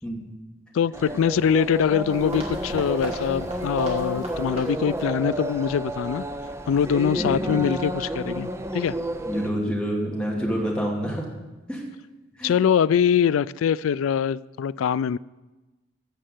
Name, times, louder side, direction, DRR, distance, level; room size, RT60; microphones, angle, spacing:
voice 1, 0.7-6.2 6.7-8.9 12.4-15.2, left 8 dB, 85° left, 18 dB, 0.3 m, -23 dB
sound 1, 0.9-9.5, right 1 dB, 15° right, 0.6 m, -31 dB
sound 2, 2.1-5.1 5.4-5.5 6.1-6.2, right 1 dB, 30° right, 2.6 m, -37 dB
voice 2, 7.1-7.5 9.2-11.2 11.7-11.8 12.4-12.5, equal, 5° left, -3 dB, 2.5 m, -27 dB
15.0 x 5.6 x 7.7 m, 1.1 s
head